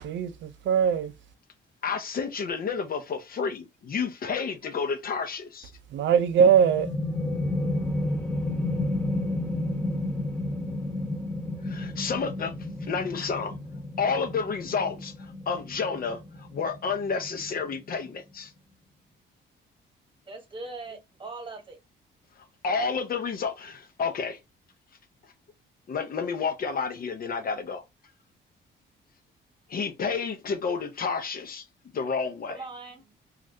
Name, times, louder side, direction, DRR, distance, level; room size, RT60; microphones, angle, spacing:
voice 1, 0.0-1.1 5.9-6.9, right 7 dB, 65° right, 0.4 m, -21 dB
voice 2, 1.8-5.7 11.6-12.5 12.8-13.6 14.0-18.5 22.6-24.4 25.9-27.8 29.7-31.6 31.9-32.6, left 5 dB, 50° left, 0.7 m, -30 dB
sound 1, 6.4-17.8, left 1 dB, 5° left, 0.8 m, -31 dB
voice 3, 20.3-21.8 32.5-33.1, right 3 dB, 25° right, 1.2 m, -40 dB
3.1 x 2.4 x 2.6 m
cardioid pair, 90°, 20 cm